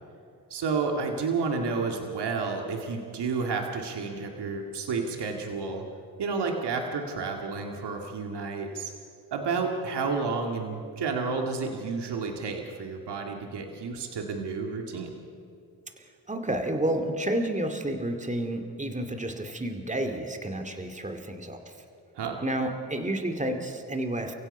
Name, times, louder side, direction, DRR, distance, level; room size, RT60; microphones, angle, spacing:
voice 1, 0.5-5.9 6.2-8.9 9.3-15.1 22.2-22.4, right 4 dB, 80° right, 3 dB, 2.2 m, -31 dB
voice 2, 16.0-21.8 22.4-24.3, right 1 dB, 20° right, 6 dB, 2.3 m, -30 dB
29.5 x 16.0 x 5.5 m, 2.5 s
cardioid pair, 65°, 40 cm